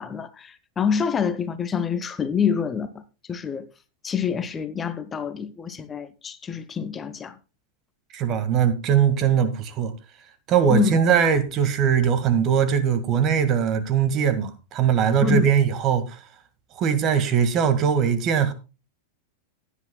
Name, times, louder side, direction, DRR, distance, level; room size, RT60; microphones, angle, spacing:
voice 1, 0.0-3.0 3.3-3.7 4.0-7.4 10.7-11.0 15.2-15.5, left 6 dB, 20° left, 1.0 m, -26 dB
voice 2, 8.1-9.9 10.5-16.2 16.8-18.5, right 7 dB, 35° right, 1.9 m, -21 dB
16.5 x 10.5 x 2.3 m
figure-of-eight pair, 90°, 0 cm